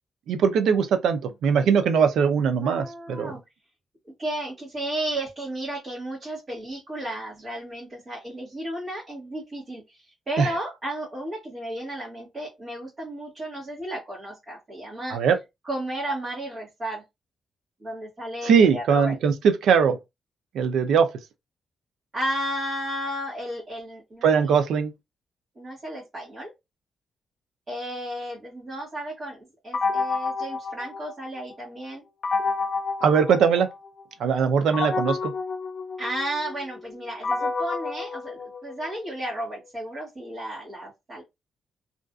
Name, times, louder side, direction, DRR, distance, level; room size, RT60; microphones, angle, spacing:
voice 1, 0.3-3.3 10.4-10.5 15.1-15.4 18.4-20.0 20.5-21.1 24.2-24.9 33.0-33.7 34.2-35.3, right 6 dB, 85° right, 0.4 m, -21 dB
voice 2, 2.6-3.4 4.2-15.2 15.6-17.0 17.8-19.2 22.1-24.5 25.5-26.5 27.7-32.0 36.0-41.2, right 1 dB, 35° right, 1.0 m, -33 dB
sound 1, 29.7-31.5 32.2-34.0 34.7-39.0, left 4 dB, 45° left, 0.3 m, -29 dB
2.5 x 2.3 x 2.3 m
cardioid pair, 125°, 0 cm